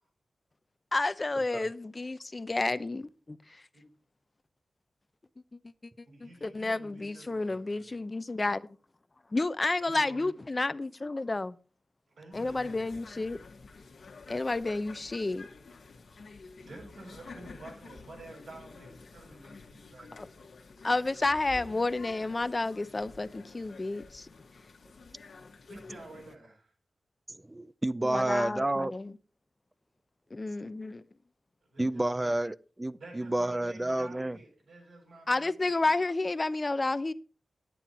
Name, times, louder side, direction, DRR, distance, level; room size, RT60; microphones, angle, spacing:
voice 1, 0.9-3.6 5.6-8.7 9.3-11.6 12.3-13.4 14.3-15.5 20.8-24.3 28.0-29.1 30.3-31.0 35.3-37.1, left 2 dB, 35° left, 0.6 m, -31 dB
voice 2, 6.0-7.9 9.9-10.3 12.1-13.0 16.6-20.5 25.7-26.7 31.7-32.3 33.0-35.9, right 2 dB, 85° right, 7.2 m, -50 dB
sound 1, 12.3-26.4, left 4 dB, 75° left, 1.4 m, -50 dB
voice 3, 27.5-28.9 31.8-34.4, right 1 dB, 20° right, 0.5 m, -30 dB
10.5 x 9.3 x 4.3 m
cardioid pair, 65°, 0 cm